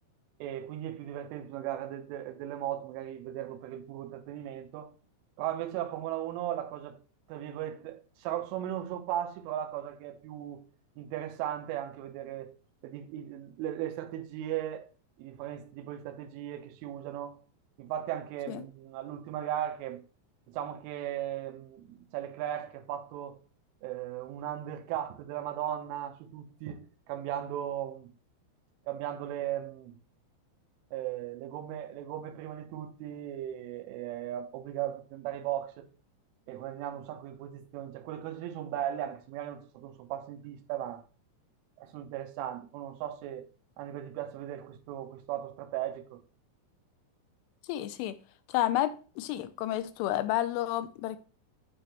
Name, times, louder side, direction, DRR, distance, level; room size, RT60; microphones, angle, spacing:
voice 1, 0.4-4.9 5.4-7.0 7.3-10.6 11.0-12.5 12.8-14.9 15.2-17.4 17.8-20.0 20.5-23.4 23.8-28.1 28.9-29.9 30.9-35.9 36.5-41.0 41.8-43.5 43.8-46.2, right 11 dB, 85° right, 3.3 m, -37 dB
voice 2, 47.7-48.2 48.5-51.2, left 13 dB, 90° left, 3.1 m, -30 dB
8.9 x 5.0 x 2.9 m
omnidirectional pair, 5.5 m